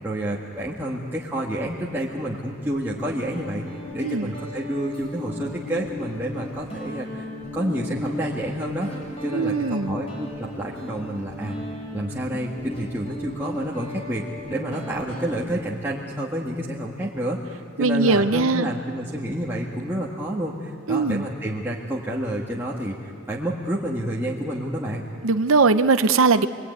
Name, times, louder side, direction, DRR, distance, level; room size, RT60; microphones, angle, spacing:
voice 1, 0.0-3.7 3.9-7.3 7.5-8.9 9.2-11.5 11.9-25.0, right 1 dB, 10° right, -5 dB, 1.9 m, -29 dB
Guitar, 2.7-15.4, left 1 dB, 30° left, 6.4 m, -36 dB
voice 2, 4.0-4.3 9.3-10.0 17.8-18.7 20.9-21.3 25.2-26.5, right 3 dB, 80° right, 10 dB, 0.7 m, -20 dB
28.0 x 22.0 x 9.5 m, 2.4 s
head